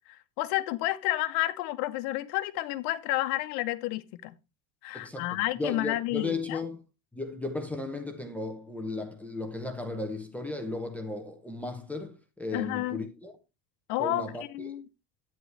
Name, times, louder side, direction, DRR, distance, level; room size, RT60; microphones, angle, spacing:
voice 1, 0.1-4.3 4.8-6.6 12.5-13.0 13.9-14.2 14.5-14.8, left 17 dB, 65° left, 1.0 m, -30 dB
voice 2, 4.9-6.8 7.1-13.3 14.0-14.7, left 2 dB, 5° left, 0.6 m, -35 dB
10.5 x 9.5 x 3.2 m
cardioid pair, 180°, 49 cm